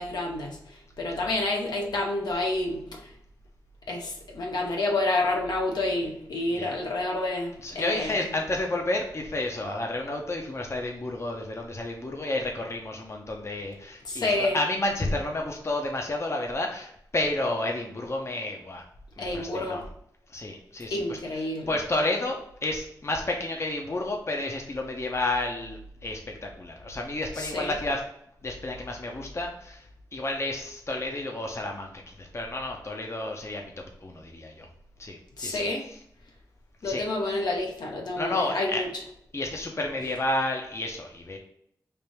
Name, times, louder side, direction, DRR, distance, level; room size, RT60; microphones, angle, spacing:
voice 1, 0.0-3.1 3.9-8.2 14.0-14.6 19.2-19.8 20.9-21.7 27.4-27.8 35.4-35.9 36.8-38.9, left 2 dB, 75° left, 0 dB, 0.9 m, -29 dB
voice 2, 7.6-18.8 19.2-19.8 20.3-21.2 21.7-28.0 28.4-29.9 30.1-33.7 34.0-34.7 35.0-35.7 36.8-37.0 38.2-38.8 39.3-41.4, left 2 dB, 40° left, 1 dB, 0.7 m, -31 dB
3.4 x 2.6 x 4.4 m, 0.70 s
cardioid pair, 50°, 7 cm